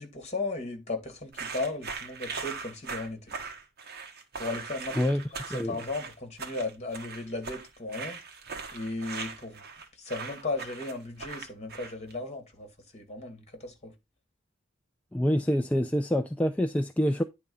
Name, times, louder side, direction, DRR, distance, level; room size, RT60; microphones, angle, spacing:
voice 1, 0.0-3.3 4.4-5.0 5.7-8.2 8.7-9.6 10.0-13.9, left 2 dB, 35° left, 2.4 m, -36 dB
sound 1, 1.3-12.1, right 5 dB, 50° right, 1.5 m, -40 dB
voice 2, 15.1-17.2, equal, 5° left, 0.4 m, -26 dB
10.0 x 3.6 x 5.6 m
head